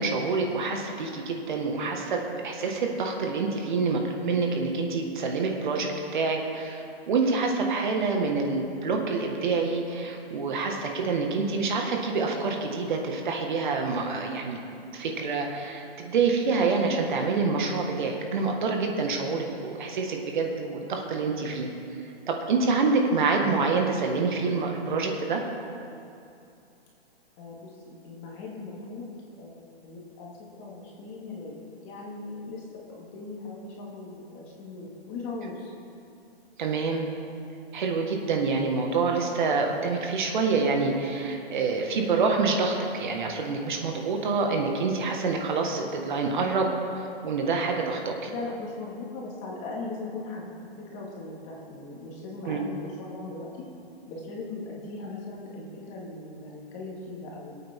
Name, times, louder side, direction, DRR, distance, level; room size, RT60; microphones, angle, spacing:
voice 1, 0.0-21.7 22.3-25.4 36.6-37.0 37.7-48.1 52.5-52.6, right 4 dB, 50° right, 2 dB, 1.8 m, -27 dB
voice 2, 27.4-29.1 29.4-35.7 48.3-50.5 50.8-53.7 54.1-57.6, left 3 dB, 20° left, -3 dB, 2.0 m, -39 dB
23.5 x 8.9 x 3.7 m, 2.7 s
hypercardioid pair, 165°, 31 cm